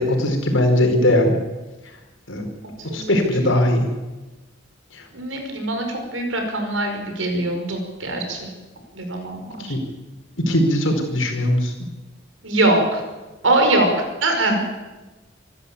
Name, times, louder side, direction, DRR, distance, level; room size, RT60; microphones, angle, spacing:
voice 1, 0.0-1.4 2.3-2.5 2.8-3.9 4.9-5.1 9.6-9.8 10.4-11.7, left 1 dB, 85° left, 4 dB, 4.8 m, -19 dB
voice 2, 2.8-3.1 5.1-8.5 8.9-9.8 12.4-13.0 13.4-13.9 14.2-14.6, right 2 dB, 90° right, 4 dB, 5.6 m, -22 dB
25.5 x 13.0 x 8.5 m, 1.2 s
head